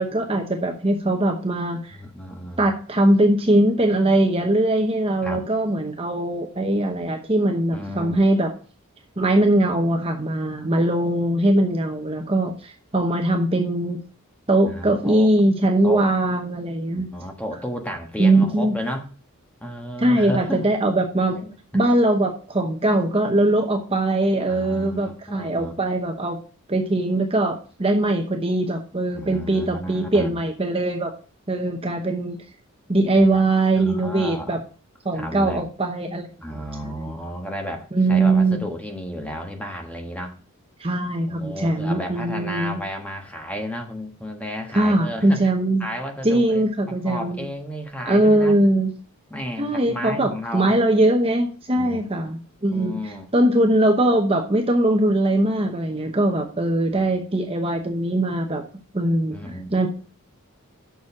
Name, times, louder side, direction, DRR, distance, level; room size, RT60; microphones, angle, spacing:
voice 1, 0.0-2.0 2.6-8.5 9.2-14.0 14.5-17.1 18.2-18.7 20.0-21.4 21.7-26.4 26.7-31.1 31.5-32.4 32.9-34.6 35.0-36.3 37.0-37.1 37.9-38.6 40.8-42.8 44.7-45.9 46.2-47.5 48.1-48.9 49.6-58.6 58.9-59.4 59.7-59.9, right 1 dB, 25° right, 3 dB, 0.9 m, -21 dB
voice 2, 1.9-2.7 5.2-5.4 7.7-8.2 14.7-15.3 15.8-16.1 16.9-19.1 19.6-20.7 21.3-21.5 24.5-25.7 29.1-30.4 33.1-33.4 33.7-34.6 35.1-35.7 36.4-40.4 41.3-45.4 45.8-48.6 49.3-50.7 51.8-52.1 52.7-53.3 56.7-57.2 59.3-59.7, equal, 5° left, 2 dB, 1.4 m, -33 dB
7.1 x 6.3 x 6.0 m, 0.38 s
head